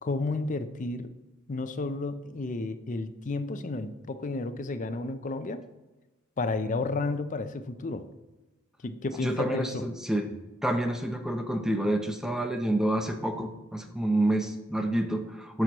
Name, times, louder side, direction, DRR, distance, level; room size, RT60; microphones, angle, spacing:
voice 1, 0.0-1.1 1.5-5.6 6.4-8.0 8.8-9.8, left 3 dB, 40° left, 10 dB, 0.5 m, -32 dB
voice 2, 9.2-10.3 10.6-15.6, right 1 dB, ahead, 5 dB, 0.6 m, -28 dB
9.5 x 6.1 x 3.0 m, 1.1 s
head